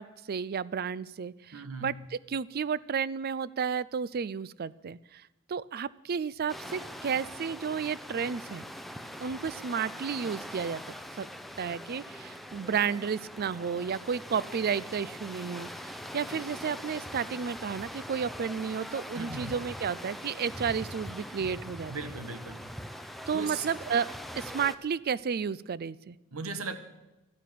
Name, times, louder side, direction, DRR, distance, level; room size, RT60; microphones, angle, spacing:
voice 1, 0.0-1.9 2.3-5.2 5.5-8.6 9.2-10.8 11.2-11.3 11.6-21.9 23.3-24.1 24.4-26.2, right 6 dB, 45° right, 19 dB, 0.4 m, -32 dB
voice 2, 1.5-1.9 19.1-19.5 21.9-22.7 23.1-23.7 26.3-26.8, right 3 dB, 85° right, 9 dB, 1.4 m, -38 dB
sound 1, 6.5-24.8, equal, ahead, 0.7 m, -42 dB
12.5 x 9.9 x 9.3 m, 1.0 s
head